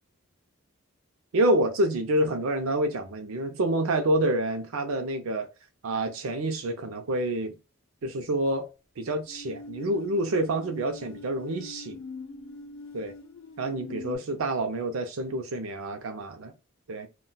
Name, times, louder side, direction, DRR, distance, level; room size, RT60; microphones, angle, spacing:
voice 1, 1.3-5.5 5.8-7.5 8.0-8.7 9.0-12.0 12.9-13.1 13.6-16.5 16.9-17.1, right 1 dB, 80° right, 0.5 m, -27 dB
sound 1, 9.3-14.2, left 3 dB, 65° left, 0.5 m, -43 dB
2.2 x 2.2 x 3.8 m
head